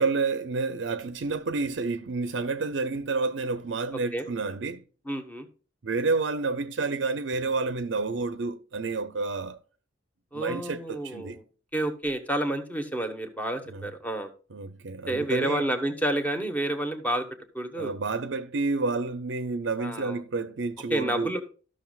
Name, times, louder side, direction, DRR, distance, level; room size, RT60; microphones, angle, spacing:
voice 1, 0.0-4.8 5.8-9.6 10.3-11.4 13.7-13.9 14.5-15.7 17.8-21.4, right 3 dB, 70° right, 0.6 m, -29 dB
voice 2, 5.1-5.5 10.3-11.4 11.7-14.3 15.1-17.3 17.5-17.9 19.8-20.2 20.9-21.4, right 1 dB, 10° left, 1.1 m, -29 dB
13.5 x 6.3 x 2.3 m
head